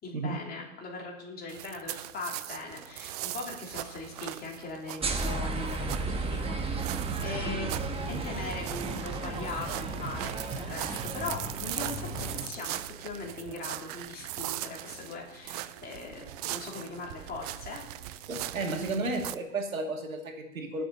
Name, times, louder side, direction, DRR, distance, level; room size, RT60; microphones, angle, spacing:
voice 1, 0.0-6.9 7.2-7.7 8.1-17.8 18.6-19.1, left 3 dB, 25° left, -1 dB, 3.6 m, -40 dB
sound 1, 1.5-19.3, right 16 dB, 35° right, 0.4 m, -40 dB
sound 2, 2.7-18.7, right 5 dB, 65° right, 2.7 m, -54 dB
sound 3, 5.0-12.5, right 3 dB, 15° right, 1.2 m, -34 dB
voice 2, 18.3-20.8, right 2 dB, 90° right, 3 dB, 2.4 m, -33 dB
21.0 x 7.2 x 4.2 m, 0.89 s
hypercardioid pair, 120°, 40 cm